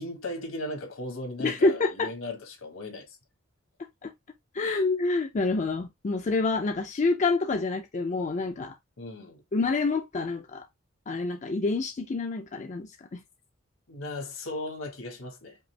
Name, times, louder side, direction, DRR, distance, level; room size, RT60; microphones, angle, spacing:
voice 1, 0.0-3.2 4.6-4.8 9.0-9.4 13.9-15.6, left 2 dB, 75° left, 1.5 m, -37 dB
voice 2, 1.4-2.1 4.0-4.1 4.5-8.7 9.5-10.7 11.1-13.2, left 3 dB, 35° left, 0.4 m, -27 dB
5.3 x 2.4 x 3.2 m
head